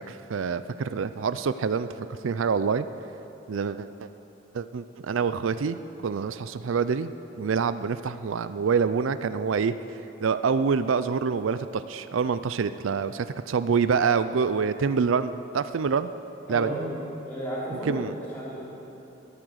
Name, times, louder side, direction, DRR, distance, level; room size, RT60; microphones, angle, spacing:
voice 1, 0.1-2.9 3.5-4.1 4.5-7.1 7.4-9.7 10.2-16.1 16.5-16.7 17.9-18.1, right 5 dB, 75° right, 12 dB, 0.4 m, -26 dB
voice 2, 16.5-18.7, equal, 10° left, -10 dB, 4.3 m, -33 dB
20.0 x 8.7 x 6.4 m, 2.9 s
head